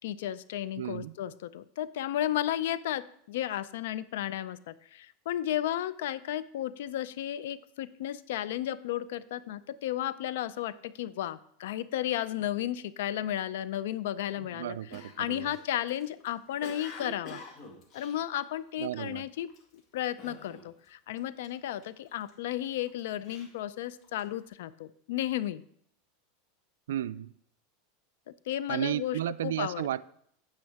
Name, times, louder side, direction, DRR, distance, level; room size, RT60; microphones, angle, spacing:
voice 1, 0.0-14.8 15.2-17.4 17.9-19.5 19.9-25.6 28.3-29.9, left 12 dB, 75° left, 0.4 m, -33 dB
voice 2, 0.8-1.2 14.4-15.6 18.8-19.2 26.9-27.3 28.7-30.0, right 12 dB, 85° right, 0.3 m, -33 dB
Cough, 14.9-19.0 19.5-19.8 20.2-20.9 21.1-22.3 22.8-24.4, left 2 dB, 45° left, 1.8 m, -47 dB
8.8 x 8.6 x 3.5 m
supercardioid pair, 115°, 0 cm